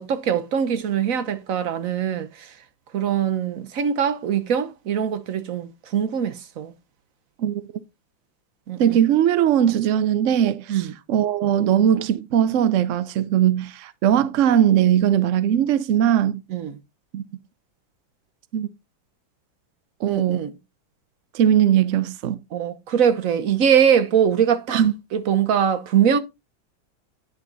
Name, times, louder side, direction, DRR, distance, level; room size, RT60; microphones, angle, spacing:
voice 1, 0.0-2.5 2.9-6.7 8.7-9.0 10.7-10.9 16.5-16.8 20.1-20.5 22.5-24.8 25.1-26.2, right 8 dB, 55° right, 1.1 m, -22 dB
voice 2, 8.8-16.4 17.1-17.2 18.5-18.7 20.0-20.4 21.3-22.4 24.7-24.9, right 10 dB, 80° right, 0.6 m, -19 dB
9.7 x 5.4 x 4.0 m
omnidirectional pair, 2.1 m